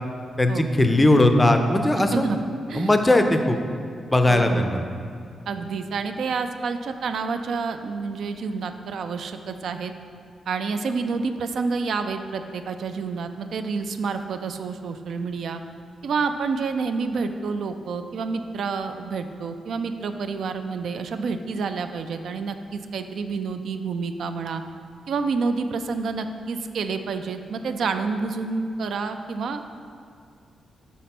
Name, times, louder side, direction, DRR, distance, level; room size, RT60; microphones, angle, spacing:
voice 1, 0.4-2.3 2.7-3.6 4.1-4.8, left 1 dB, 15° left, 6 dB, 0.4 m, -19 dB
voice 2, 4.3-4.7 5.5-9.9 10.5-15.6 16.0-24.6 25.1-29.7, right 4 dB, 70° right, 8 dB, 0.3 m, -28 dB
5.4 x 4.1 x 5.9 m, 2.3 s
wide cardioid pair, 140°, 0 cm